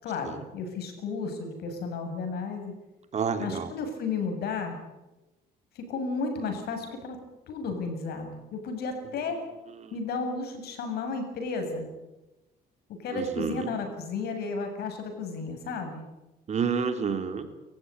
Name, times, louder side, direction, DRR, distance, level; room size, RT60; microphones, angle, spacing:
voice 1, 0.0-2.8 3.4-4.8 5.7-7.2 7.5-9.4 9.9-11.9 12.9-16.0, left 4 dB, 70° left, 6 dB, 7.7 m, -33 dB
voice 2, 3.1-3.7 9.8-9.9 13.1-13.7 16.5-17.5, right 6 dB, 40° right, 7 dB, 3.4 m, -29 dB
30.0 x 15.5 x 9.8 m, 1.0 s
cardioid pair, 110°, 17 cm